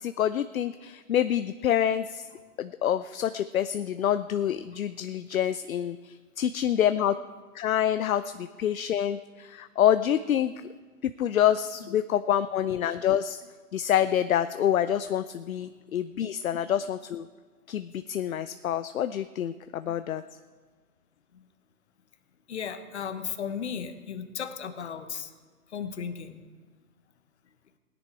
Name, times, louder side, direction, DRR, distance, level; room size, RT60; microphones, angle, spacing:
voice 1, 0.0-2.2 2.6-7.1 7.5-10.5 11.0-13.4 13.7-17.3 17.7-20.2, left 10 dB, 65° left, 12 dB, 0.5 m, -27 dB
voice 2, 22.5-25.3 25.7-26.4, left 7 dB, 45° left, 9 dB, 1.1 m, -36 dB
18.0 x 10.0 x 4.6 m, 1.4 s
hypercardioid pair, 155°, 46 cm